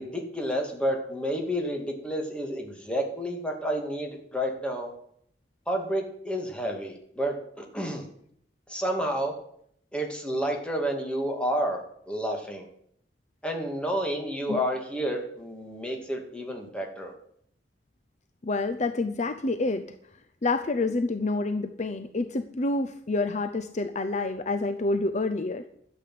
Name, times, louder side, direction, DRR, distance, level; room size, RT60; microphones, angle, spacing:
voice 1, 0.0-4.9 5.7-8.0 8.7-9.3 9.9-11.8 12.1-12.7 13.4-17.1, equal, 5° left, 1 dB, 2.4 m, -30 dB
voice 2, 18.4-19.8 20.4-25.6, left 2 dB, 40° left, 9 dB, 0.7 m, -28 dB
12.0 x 8.5 x 7.7 m, 0.68 s
head